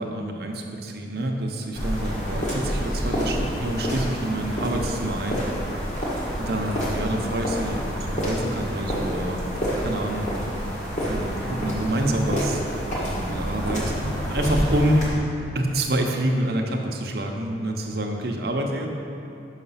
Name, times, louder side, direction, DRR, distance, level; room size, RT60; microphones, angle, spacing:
voice 1, 0.0-5.4 6.4-9.4 9.8-10.3 11.1-12.6 12.9-13.9 14.3-15.1 15.5-18.9, right 1 dB, 55° right, 2 dB, 0.7 m, -27 dB
sound 1, 1.7-15.1, equal, 40° left, 1.5 m, -28 dB
5.9 x 5.7 x 5.6 m, 2.7 s
head